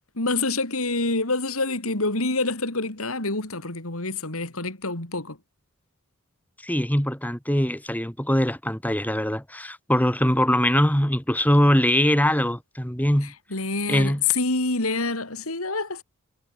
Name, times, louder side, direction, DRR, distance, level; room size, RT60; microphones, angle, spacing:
voice 1, 0.2-5.4 13.2-16.0, left 3 dB, 75° left, 4.5 m, -27 dB
voice 2, 6.6-13.3 13.9-14.2, equal, 10° left, 5.2 m, -22 dB
head